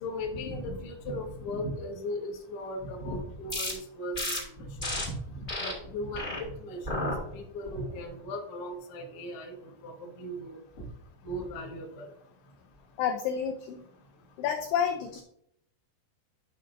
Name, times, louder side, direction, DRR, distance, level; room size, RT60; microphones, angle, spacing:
voice 1, 0.0-4.3 4.6-5.2 5.6-9.5 9.8-10.8 11.2-12.1, left 1 dB, 65° left, -2 dB, 1.3 m, -37 dB
sound 1, 3.5-3.7 4.1-4.4 4.8-5.0 5.5-5.7 6.1-6.4 6.8-7.2 7.7-8.0, left 1 dB, 15° left, 1.9 m, -32 dB
voice 2, 13.0-13.8 14.4-15.2, left 8 dB, 90° left, 5 dB, 2.2 m, -29 dB
13.0 x 5.8 x 2.6 m, 0.72 s
omnidirectional pair, 5.3 m